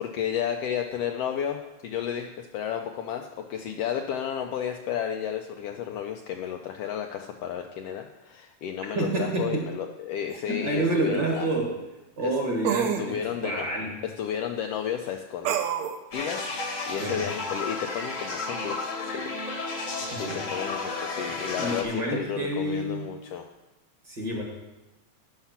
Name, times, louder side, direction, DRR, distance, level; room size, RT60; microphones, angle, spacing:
voice 1, 0.0-11.5 12.2-12.3 13.0-13.7 14.0-15.6 16.1-19.2 19.7-23.5, left 9 dB, 90° left, 4 dB, 1.4 m, -32 dB
voice 2, 8.9-9.7 10.5-11.7 12.2-14.0 17.0-17.3 20.0-20.4 21.6-23.1 24.1-24.4, right 1 dB, 45° right, 0 dB, 1.7 m, -28 dB
sound 1, 10.3-10.4 12.6-13.1 15.4-16.0, right 9 dB, 75° right, 1.8 m, -27 dB
sound 2, 16.1-21.8, left 3 dB, 45° left, 1.0 m, -33 dB
11.5 x 5.7 x 5.8 m, 1.0 s
omnidirectional pair, 3.3 m